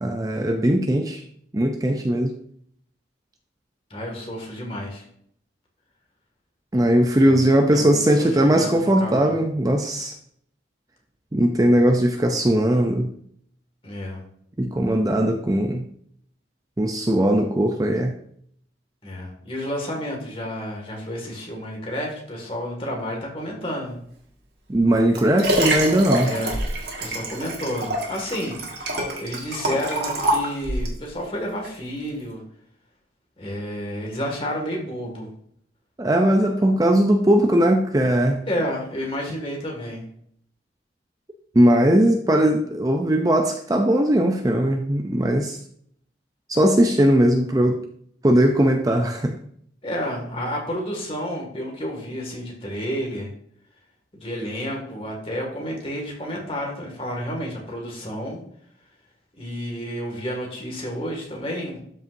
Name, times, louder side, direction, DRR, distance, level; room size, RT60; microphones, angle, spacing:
voice 1, 0.0-1.2 1.5-2.3 6.7-10.1 11.3-13.1 14.6-15.8 16.8-18.1 24.7-26.3 36.0-38.5 41.5-45.6 46.5-47.8 48.2-49.4, right 1 dB, 20° right, 4 dB, 0.5 m, -19 dB
voice 2, 3.9-5.1 7.2-9.3 13.8-14.2 19.0-24.0 26.2-26.6 27.0-28.6 29.2-32.4 33.4-35.3 38.5-40.0 49.8-53.3 54.1-58.4 59.4-61.8, equal, 30° left, 0 dB, 2.0 m, -30 dB
Liquid, 24.7-31.0 31.6-31.7, right 1 dB, 60° right, 1.7 m, -26 dB
12.5 x 5.4 x 2.6 m, 0.66 s
head